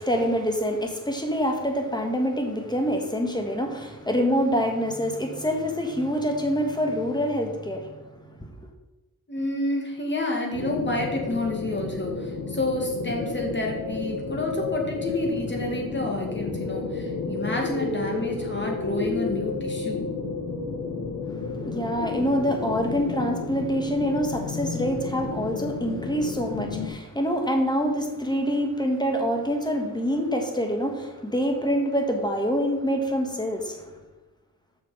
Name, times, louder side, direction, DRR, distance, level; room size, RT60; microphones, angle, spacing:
voice 1, 0.0-7.9 21.6-33.8, equal, 10° left, 3 dB, 1.5 m, -26 dB
voice 2, 9.3-20.1, left 2 dB, 30° left, 0 dB, 2.2 m, -29 dB
sound 1, 10.5-26.9, left 4 dB, 85° left, 1.4 m, -31 dB
7.1 x 6.4 x 5.0 m, 1.1 s
wide cardioid pair, 95°, 35 cm